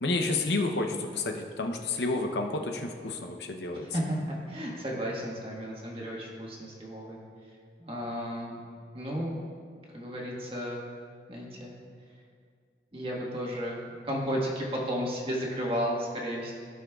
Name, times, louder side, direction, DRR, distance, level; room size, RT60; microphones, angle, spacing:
voice 1, 0.0-3.9, left 2 dB, 75° left, 4 dB, 0.7 m, -30 dB
voice 2, 3.7-7.2 7.8-8.6 8.9-9.4 9.9-10.9 11.3-11.7 12.9-13.8 14.0-16.5, equal, 30° right, -3 dB, 1.5 m, -33 dB
15.0 x 6.2 x 2.4 m, 2.1 s
head